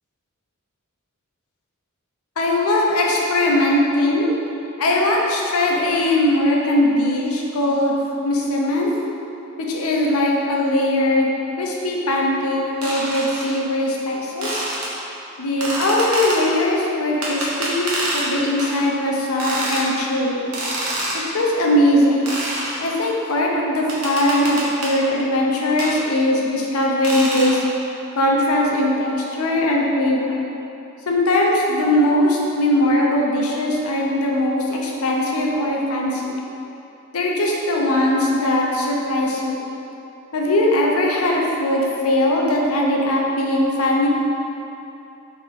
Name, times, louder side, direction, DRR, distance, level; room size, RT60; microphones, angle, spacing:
voice 1, 2.4-4.3 4.8-9.0 9.6-14.6 15.4-20.5 21.1-22.4 22.8-27.6 28.2-30.4 31.1-36.4 37.1-39.6 40.3-44.1, left 1 dB, 70° left, -2 dB, 0.6 m, -20 dB
sound 1, 12.8-13.5 14.4-14.9 15.6-16.4 17.2-18.3 18.6-18.8 19.4-19.9 20.5-21.2 22.3-22.8 23.9-25.0 25.8-26.0 27.0-27.5, right 1 dB, 80° right, 0.9 m, -26 dB
3.4 x 3.1 x 4.5 m, 2.9 s
head